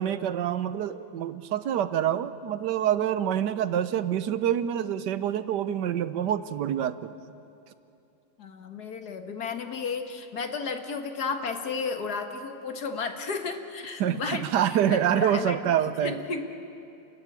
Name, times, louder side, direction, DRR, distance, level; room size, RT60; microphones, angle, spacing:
voice 1, 0.0-7.2 14.0-16.2, right 10 dB, 80° right, 13 dB, 1.4 m, -26 dB
voice 2, 8.4-14.5 14.9-15.8 16.0-16.5, left 5 dB, 65° left, 6 dB, 2.0 m, -33 dB
29.5 x 14.5 x 9.8 m, 2.8 s
omnidirectional pair, 1.8 m